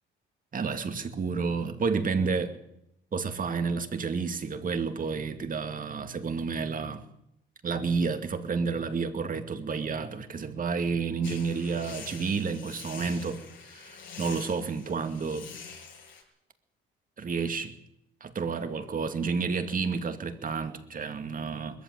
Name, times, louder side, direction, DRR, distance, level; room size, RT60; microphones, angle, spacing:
voice 1, 0.5-2.6 3.1-7.1 7.6-13.4 13.7-15.5 17.2-17.7 18.2-21.8, right 5 dB, 45° right, 8 dB, 2.3 m, -30 dB
sound 1, 11.2-16.2, left 6 dB, 70° left, 7.1 m, -45 dB
21.0 x 14.5 x 9.4 m, 0.80 s
cardioid pair, 90°, 20 cm